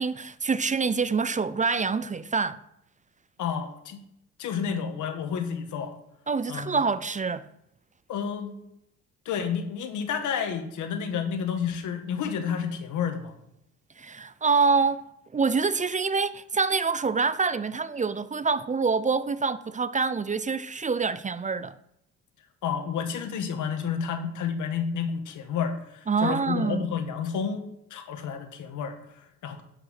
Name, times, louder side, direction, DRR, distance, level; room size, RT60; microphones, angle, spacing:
voice 1, 0.0-2.6 6.3-7.5 14.0-15.0 15.3-21.8 26.1-26.9, right 4 dB, 25° right, 0.5 m, -26 dB
voice 2, 3.4-4.0 4.4-6.0 6.5-6.8 8.1-8.5 9.2-13.3 22.6-27.6 27.9-29.6, left 7 dB, 80° left, 1.6 m, -30 dB
10.0 x 5.8 x 5.7 m
cardioid pair, 90°, 30 cm